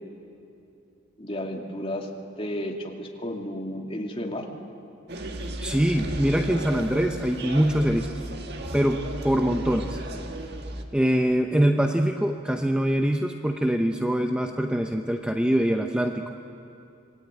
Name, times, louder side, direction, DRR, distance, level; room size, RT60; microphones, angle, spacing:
voice 1, 1.2-2.1 2.4-4.5, left 1 dB, 30° left, 1 dB, 2.4 m, -32 dB
sound 1, 5.1-10.8, right 1 dB, 55° right, 1.8 m, -34 dB
voice 2, 5.6-8.1 8.7-10.0 10.9-16.2, equal, 5° right, 4 dB, 0.7 m, -23 dB
26.5 x 20.5 x 8.9 m, 2.7 s
head